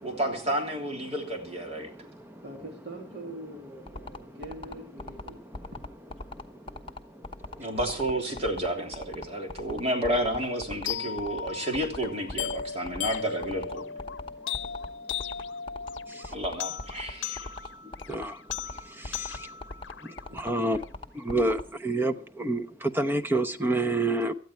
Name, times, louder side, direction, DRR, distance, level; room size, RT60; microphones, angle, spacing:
voice 1, 0.0-1.9 7.6-13.9 16.3-17.5, right 1 dB, 35° right, 3.2 m, -31 dB
voice 2, 2.4-5.8, right 1 dB, 60° right, 2.6 m, -43 dB
sound 1, 3.9-21.6, left 2 dB, 30° left, 1.1 m, -39 dB
sound 2, 10.8-20.9, left 8 dB, 85° left, 0.7 m, -37 dB
voice 3, 20.3-20.8 21.2-22.1 22.4-22.6 22.9-24.3, right 2 dB, 10° right, 0.8 m, -26 dB
18.5 x 13.5 x 4.5 m
head